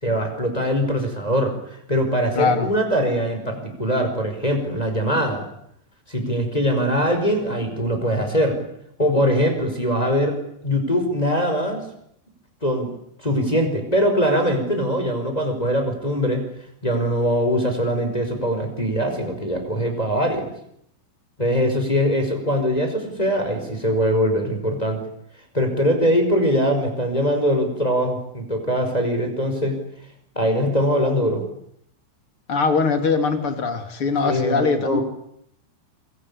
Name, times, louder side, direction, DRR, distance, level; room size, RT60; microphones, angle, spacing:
voice 1, 0.0-1.5 1.9-5.4 6.1-8.6 9.0-11.8 12.6-12.9 13.2-16.4 16.8-20.5 21.4-25.0 25.5-29.7 30.3-31.4 34.2-35.0, equal, 10° left, 4 dB, 4.7 m, -22 dB
voice 2, 2.3-2.7 32.5-35.0, left 4 dB, 35° left, 7 dB, 2.7 m, -21 dB
28.0 x 24.0 x 8.6 m, 0.72 s
omnidirectional pair, 5.6 m